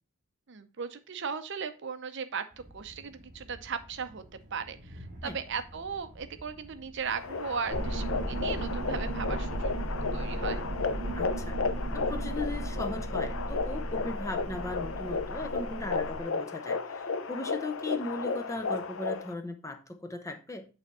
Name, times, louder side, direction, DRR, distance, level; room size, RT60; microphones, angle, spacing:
voice 1, 0.5-4.2 4.5-9.8 10.1-10.6, right 6 dB, 55° right, 11 dB, 0.6 m, -37 dB
Train, 2.5-10.3, equal, 35° right, 1.7 m, -50 dB
sound 1, 7.2-19.3, left 4 dB, 65° left, 0.6 m, -34 dB
sound 2, 7.7-16.2, right 1 dB, 15° right, 4.2 m, -35 dB
voice 2, 11.2-11.6 11.9-20.7, left 2 dB, 15° left, 6 dB, 0.6 m, -38 dB
8.5 x 3.4 x 4.1 m, 0.34 s
head